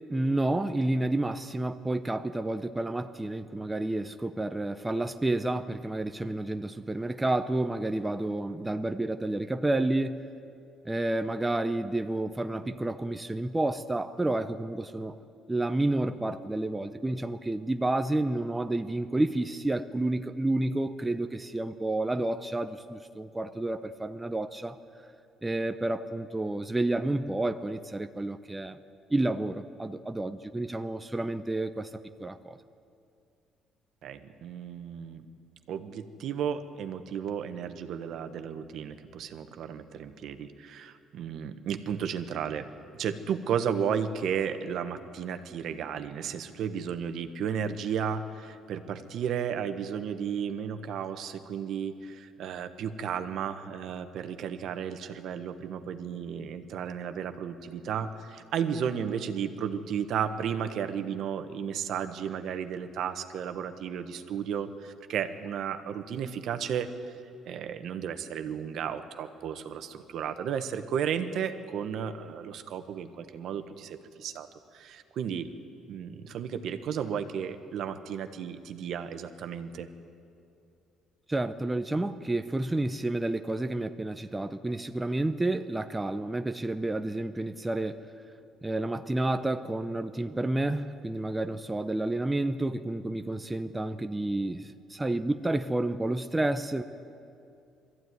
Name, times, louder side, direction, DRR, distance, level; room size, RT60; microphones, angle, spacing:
voice 1, 0.1-10.2 10.8-15.2 15.5-24.8 25.4-28.8 29.1-31.9 32.2-32.6 81.3-88.0 88.6-96.8, right 2 dB, 10° right, 8 dB, 0.7 m, -30 dB
voice 2, 34.0-35.2 35.7-42.7 43.0-67.1 67.4-74.5 74.7-75.5 75.9-79.9, right 8 dB, 65° right, 8 dB, 1.2 m, -33 dB
20.5 x 14.5 x 9.5 m, 2.5 s
cardioid pair, 110°, 0 cm